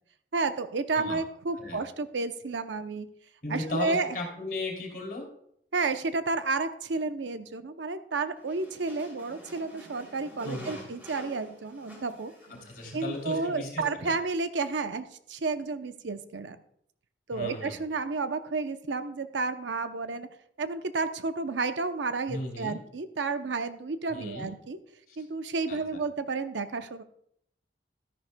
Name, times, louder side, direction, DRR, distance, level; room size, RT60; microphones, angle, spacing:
voice 1, 0.3-3.1 3.5-4.1 5.7-12.3 12.9-16.6 17.3-20.3 20.6-24.8 25.2-27.0, right 3 dB, 85° right, 10 dB, 0.7 m, -31 dB
voice 2, 3.4-5.3 10.4-10.8 12.5-14.2 17.3-17.7 22.3-22.8 24.1-24.5 25.1-25.2 25.7-25.8, left 2 dB, 50° left, 0 dB, 3.0 m, -36 dB
sound 1, 8.4-13.5, equal, 10° right, 3.0 m, -49 dB
13.0 x 10.5 x 2.2 m, 0.70 s
head